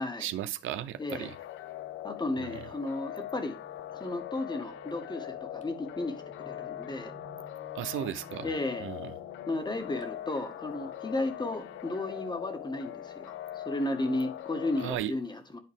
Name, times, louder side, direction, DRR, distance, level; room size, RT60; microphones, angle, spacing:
voice 1, 0.2-1.3 2.4-2.6 7.7-8.5 8.8-9.1 14.8-15.1, right 11 dB, 80° right, 0.6 m, -35 dB
Piano, 0.6-15.0, left 2 dB, 35° left, 2.1 m, -53 dB
voice 2, 1.0-1.3 2.0-3.6 3.9-7.1 8.4-8.9 9.5-15.6, left 2 dB, 20° left, 1.7 m, -34 dB
sound 1, 1.1-15.0, left 13 dB, 80° left, 0.5 m, -42 dB
11.0 x 4.1 x 3.5 m
cardioid pair, 90°, 20 cm